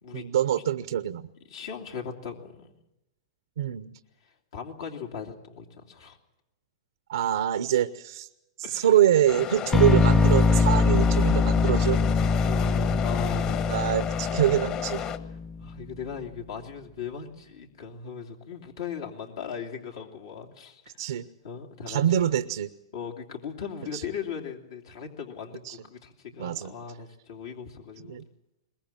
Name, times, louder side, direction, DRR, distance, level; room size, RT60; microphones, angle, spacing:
voice 1, 0.1-1.3 3.6-4.0 7.1-8.3 8.6-12.0 13.7-15.0 21.0-21.3 21.9-22.7 23.9-24.0 25.6-25.8 26.4-26.7 28.1-28.2, right 11 dB, 75° right, 13 dB, 0.7 m, -25 dB
voice 2, 1.5-2.7 4.2-6.2 8.6-8.9 9.4-9.8 12.4-13.7 15.6-21.0 21.4-22.0 22.9-28.2, left 6 dB, 75° left, 2 dB, 2.8 m, -38 dB
sound 1, 9.3-15.2, left 9 dB, 40° left, 1.5 m, -33 dB
sound 2, 9.7-15.7, left 4 dB, 15° left, 0.7 m, -23 dB
22.5 x 20.5 x 7.5 m, 0.90 s
hypercardioid pair, 115°, 2 cm